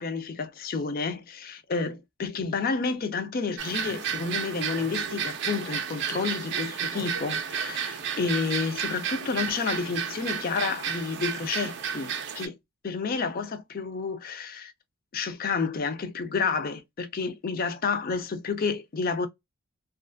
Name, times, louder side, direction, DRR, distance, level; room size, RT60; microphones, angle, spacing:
voice 1, 0.0-12.6 12.8-14.7 15.1-19.3, left 4 dB, 40° left, 0.4 m, -30 dB
sound 1, 3.6-12.5, right 7 dB, 50° right, 0.4 m, -32 dB
2.4 x 2.4 x 2.4 m
head